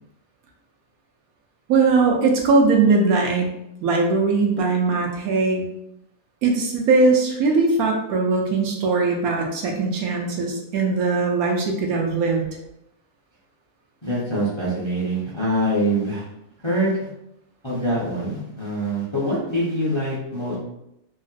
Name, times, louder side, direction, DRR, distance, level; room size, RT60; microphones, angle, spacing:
voice 1, 1.7-3.5 3.8-5.6 6.4-12.4, right 3 dB, 75° right, 1 dB, 1.0 m, -20 dB
voice 2, 14.0-16.2 16.6-17.1 17.6-20.6, right 1 dB, 25° left, -9 dB, 0.6 m, -24 dB
3.0 x 2.7 x 2.4 m, 0.81 s
omnidirectional pair, 1.6 m